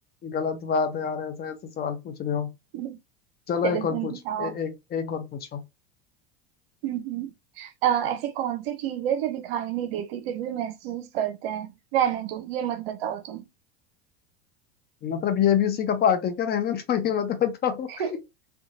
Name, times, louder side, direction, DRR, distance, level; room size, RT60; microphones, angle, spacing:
voice 1, 0.2-2.5 3.5-4.1 4.4-5.6 15.0-18.2, left 8 dB, 30° left, 0.7 m, -26 dB
voice 2, 3.6-4.5 6.8-13.5 18.0-18.1, right 10 dB, 65° right, 0.6 m, -29 dB
2.8 x 2.2 x 2.7 m
hypercardioid pair, 85°, 34 cm